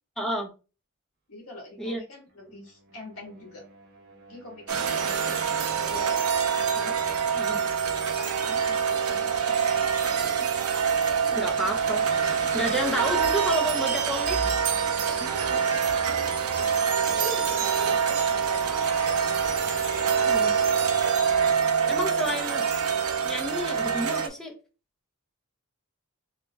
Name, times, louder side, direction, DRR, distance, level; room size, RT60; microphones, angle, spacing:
voice 1, 0.2-0.5 1.8-2.0 7.4-7.7 11.3-12.1 12.5-14.4 17.2-17.3 20.3-20.6 21.9-22.7 23.2-24.6, equal, ahead, 1 dB, 0.7 m, -30 dB
voice 2, 1.3-3.6 4.3-6.1 6.7-6.9 8.2-9.7 10.2-10.6 15.1-15.8 16.6-19.3 19.7-21.0, left 2 dB, 75° left, 0 dB, 1.6 m, -44 dB
sound 1, 2.3-21.0, right 2 dB, 50° right, 1.0 m, -46 dB
sound 2, 4.7-24.3, right 7 dB, 85° right, 0.7 m, -25 dB
3.2 x 2.8 x 3.4 m, 0.33 s
head